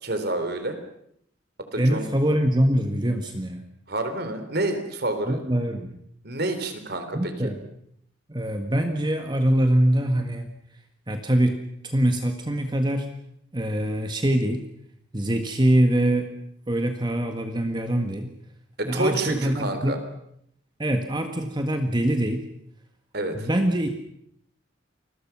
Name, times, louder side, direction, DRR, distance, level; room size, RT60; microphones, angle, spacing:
voice 1, 0.0-0.8 1.7-2.0 3.9-5.4 6.2-7.5 18.8-20.0 23.1-23.5, right 2 dB, 55° right, 7 dB, 3.8 m, -28 dB
voice 2, 1.8-3.6 5.2-6.0 7.1-7.6 8.3-10.5 11.1-11.6 11.8-13.1 13.5-14.6 15.1-16.3 16.7-18.3 18.8-20.0 20.8-22.4 23.3-23.9, right 1 dB, 25° right, 5 dB, 1.6 m, -23 dB
29.0 x 21.5 x 6.1 m, 0.71 s
head